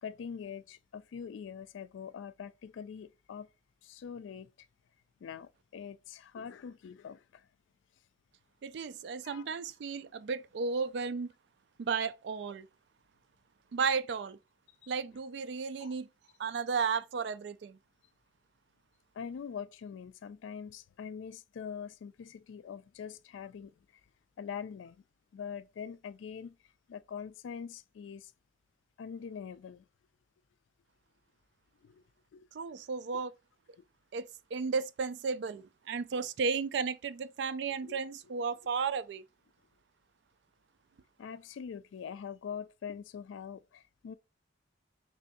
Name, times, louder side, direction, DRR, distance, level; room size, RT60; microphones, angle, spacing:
voice 1, 0.0-3.5 3.8-4.5 5.2-7.4 9.2-9.5 14.8-14.9 15.8-16.0 19.2-23.7 24.4-25.0 25.3-26.6 26.9-28.3 29.0-29.8 31.8-32.0 32.3-32.5 37.8-38.0 41.2-44.1, left 7 dB, 85° left, 0.3 m, -43 dB
voice 2, 8.6-11.3 11.8-12.7 13.7-14.4 14.9-16.1 16.4-17.8 32.5-33.3 34.1-39.2, right 5 dB, 65° right, 0.3 m, -34 dB
3.3 x 2.6 x 4.0 m
head